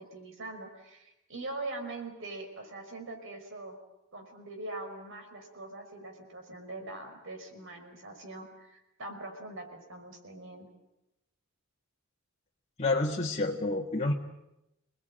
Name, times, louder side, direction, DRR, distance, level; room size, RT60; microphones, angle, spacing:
voice 1, 0.0-3.8 4.1-10.7, right 2 dB, 60° right, 5 dB, 5.5 m, -42 dB
voice 2, 12.8-14.1, left 2 dB, 30° left, -1 dB, 1.8 m, -28 dB
28.0 x 20.5 x 8.9 m, 0.89 s
head